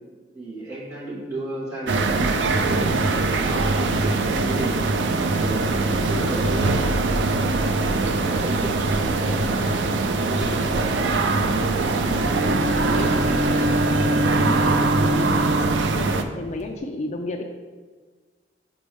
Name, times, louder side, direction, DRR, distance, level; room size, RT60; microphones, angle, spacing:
voice 1, 0.3-4.8 5.2-7.4 7.7-10.7, right 2 dB, 15° right, -8 dB, 1.9 m, -34 dB
sound 1, 1.9-16.2, right 3 dB, 85° right, 0.5 m, -22 dB
Bowed string instrument, 12.1-16.7, equal, 40° right, 0.6 m, -25 dB
voice 2, 12.3-17.4, left 2 dB, 40° left, 4 dB, 0.4 m, -34 dB
6.3 x 5.2 x 3.5 m, 1.4 s
head